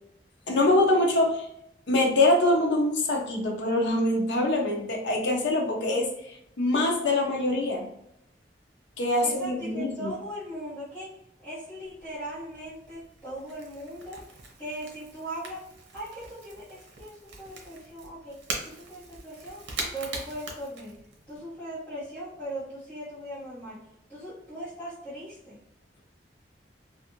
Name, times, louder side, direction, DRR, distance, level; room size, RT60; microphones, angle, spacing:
voice 1, 0.5-1.4 1.9-6.1 6.6-7.9 9.0-10.1, left 2 dB, 80° left, 0 dB, 0.6 m, -24 dB
voice 2, 9.2-11.1 11.4-14.2 14.6-15.6 15.9-19.6 19.9-21.0 21.3-23.8 24.1-25.6, right 1 dB, 10° left, -14 dB, 1.1 m, -39 dB
Crackle / Crack, 11.8-21.4, right 3 dB, 90° right, 0.7 m, -42 dB
2.5 x 2.4 x 2.8 m, 0.77 s
head